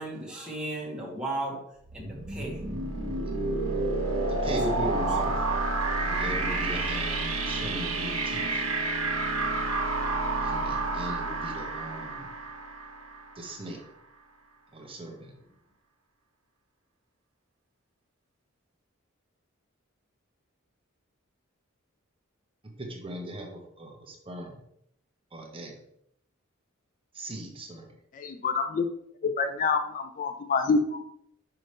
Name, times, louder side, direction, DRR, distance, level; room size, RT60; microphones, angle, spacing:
voice 1, 0.0-1.6 1.9-2.6 4.0-4.2 4.7-5.3, right 2 dB, 5° right, -5 dB, 1.6 m, -36 dB
sound 1, 1.9-13.6, right 2 dB, 75° right, 1.3 m, -29 dB
voice 2, 4.4-5.3 6.1-8.6 10.4-12.3 13.4-13.8 14.7-15.3 22.8-24.6 25.3-25.7 27.1-27.9, right 1 dB, 25° right, 1 dB, 0.9 m, -38 dB
voice 3, 28.2-28.9 29.2-31.0, left 4 dB, 40° left, 8 dB, 0.3 m, -27 dB
5.8 x 5.2 x 3.2 m, 0.72 s
head